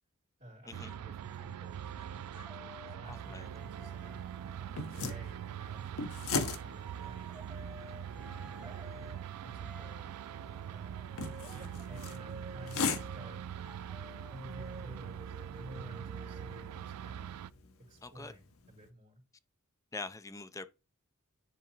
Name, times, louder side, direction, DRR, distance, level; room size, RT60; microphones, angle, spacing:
voice 1, 0.4-4.2 4.6-7.4 8.1-10.3 10.6-11.2 11.5-13.5 14.3-17.3 17.8-19.2, equal, 35° right, 3.2 m, -52 dB
sound 1, 0.7-17.5, right 9 dB, 80° right, 0.3 m, -43 dB
sound 2, 0.9-4.8 5.8-17.1, equal, 5° right, 1.2 m, -53 dB
sound 3, 3.1-18.9, left 4 dB, 65° left, 0.9 m, -42 dB
voice 2, 3.1-3.5 18.0-18.4 19.9-20.7, left 3 dB, 15° left, 0.4 m, -43 dB
10.0 x 3.9 x 2.9 m
head